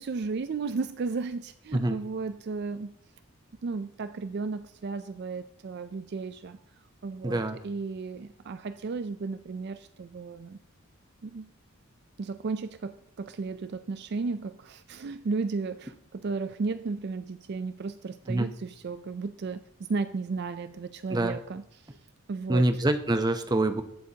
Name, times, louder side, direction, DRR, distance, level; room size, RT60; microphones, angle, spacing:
voice 1, 0.0-2.9 3.6-6.6 7.0-10.6 11.2-11.5 12.2-21.6 22.3-22.8, right 4 dB, 50° right, 0.4 m, -34 dB
voice 2, 7.2-7.6 18.3-18.5 21.1-21.4 22.5-23.8, right 1 dB, 20° right, 0.7 m, -25 dB
21.5 x 8.0 x 2.8 m
head